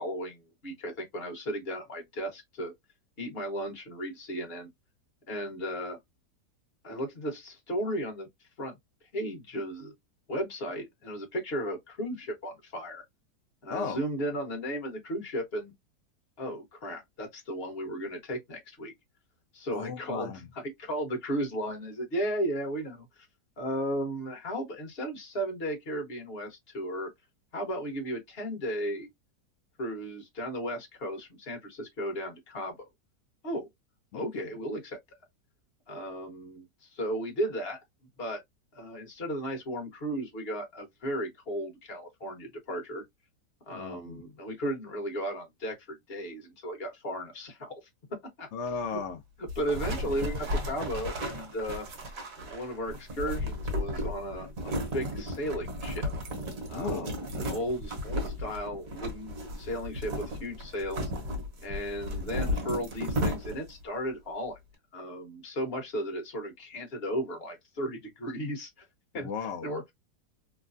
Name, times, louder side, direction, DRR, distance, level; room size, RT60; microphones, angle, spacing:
voice 1, 0.0-2.7 3.2-4.7 5.3-6.0 6.8-8.3 8.6-8.8 9.1-9.9 10.3-13.0 13.6-15.7 16.4-18.9 19.5-23.3 23.6-27.1 27.5-29.1 29.8-32.9 33.4-33.7 34.1-35.0 35.9-37.8 38.2-38.4 38.7-43.0 43.6-47.8 48.4-48.5 49.6-51.9 52.4-56.1 56.7-57.2 57.4-61.1 61.6-64.6 64.9-68.9 69.1-69.3 69.6-69.9, equal, 40° left, 1.2 m, -35 dB
voice 2, 13.7-14.0 19.7-20.5 34.1-34.2 43.7-44.2 48.5-49.2 56.7-57.2 69.1-69.7, left 5 dB, 80° left, 0.6 m, -35 dB
sound 1, 49.5-63.8, left 1 dB, 60° right, 1.3 m, -34 dB
3.1 x 2.2 x 2.5 m
omnidirectional pair, 1.8 m